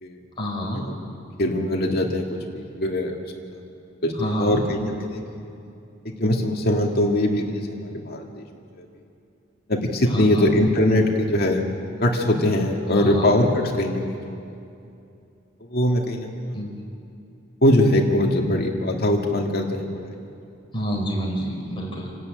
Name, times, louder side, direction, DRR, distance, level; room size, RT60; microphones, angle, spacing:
voice 1, 0.4-0.8 4.2-4.6 10.1-10.5 12.9-13.3 16.5-16.7 20.7-22.2, equal, 25° left, -2 dB, 4.5 m, -28 dB
voice 2, 1.4-3.6 4.0-5.5 6.0-8.5 8.8-8.9 9.7-11.6 12.0-14.4 15.6-16.5 17.6-20.3, left 1 dB, 50° left, 1 dB, 2.3 m, -22 dB
27.5 x 12.5 x 9.1 m, 2.6 s
head